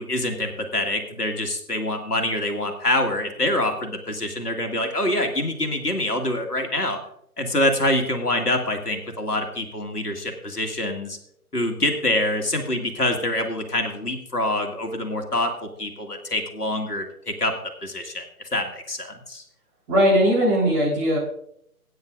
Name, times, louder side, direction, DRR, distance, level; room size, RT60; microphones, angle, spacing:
voice 1, 0.0-7.0 7.4-11.2 11.5-17.5 17.8-19.4, left 1 dB, 80° left, 4 dB, 2.0 m, -25 dB
voice 2, 19.9-21.2, equal, 20° right, -5 dB, 3.8 m, -19 dB
19.0 x 9.5 x 2.5 m, 0.72 s
figure-of-eight pair, 145°, 46 cm